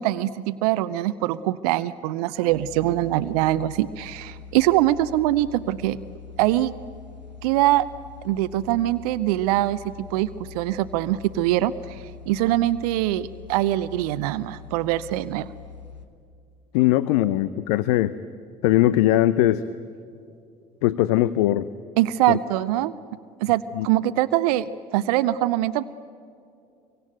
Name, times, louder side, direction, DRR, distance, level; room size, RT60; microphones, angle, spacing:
voice 1, 0.0-6.0 6.4-6.7 7.4-7.9 8.2-15.5 22.0-22.9 23.4-25.8, right 15 dB, 65° right, 15 dB, 0.7 m, -23 dB
sound 1, 2.5-16.1, left 6 dB, 90° left, 1.4 m, -43 dB
voice 2, 16.7-18.1 18.6-19.6 20.8-21.7 22.3-22.4 23.8-23.9, left 14 dB, 65° left, 16 dB, 0.7 m, -20 dB
25.0 x 24.0 x 9.1 m, 2.4 s
figure-of-eight pair, 55°, 21 cm